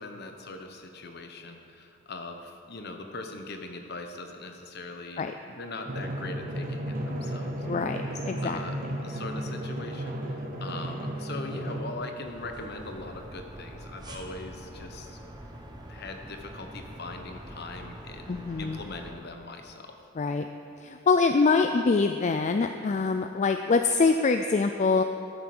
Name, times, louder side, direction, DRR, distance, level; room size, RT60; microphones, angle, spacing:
voice 1, 0.0-7.7 8.4-15.2 15.9-20.0, left 2 dB, 55° left, 5 dB, 1.0 m, -41 dB
Drum, 5.9-11.9, right 1 dB, 45° right, 1.3 m, -34 dB
voice 2, 7.7-8.6 18.3-18.8 20.2-20.5 20.8-25.0, left 4 dB, 35° left, 7 dB, 0.4 m, -24 dB
sound 1, 12.2-19.1, right 1 dB, 20° right, 1.1 m, -44 dB
12.0 x 8.0 x 6.1 m, 2.6 s
head